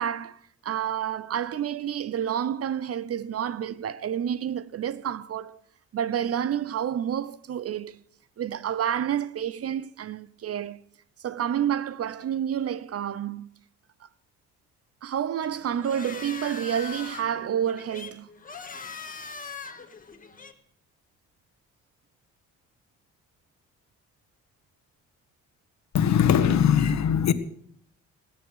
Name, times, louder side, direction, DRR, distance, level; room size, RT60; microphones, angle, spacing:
voice 1, 0.0-5.6 5.9-8.0 8.4-10.8 11.2-13.5 15.0-18.3, right 9 dB, 50° right, 0.8 m, -29 dB
sound 1, 15.4-20.5, left 5 dB, 30° left, 1.7 m, -41 dB
voice 2, 25.9-27.3, left 8 dB, 65° left, 1.4 m, -20 dB
19.5 x 9.1 x 6.4 m
cardioid pair, 90°, 30 cm